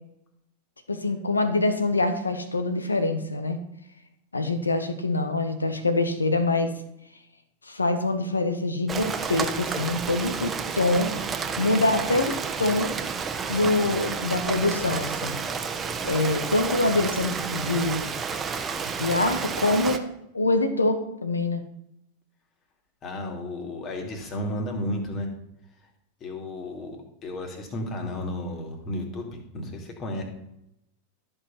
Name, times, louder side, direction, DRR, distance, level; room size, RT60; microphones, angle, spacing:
voice 1, 0.9-3.6 4.3-6.7 7.7-11.1 11.6-12.3 12.6-12.9 13.5-15.4 16.0-18.1 19.0-20.0 20.3-21.6, left 2 dB, 80° left, 9 dB, 1.2 m, -25 dB
Rain, 8.9-20.0, right 5 dB, 20° right, 1.1 m, -31 dB
voice 2, 23.0-25.3 26.2-27.0 27.2-30.2, left 1 dB, 35° left, 3 dB, 2.6 m, -33 dB
13.5 x 5.5 x 5.8 m, 0.80 s
figure-of-eight pair, 90°, 0 cm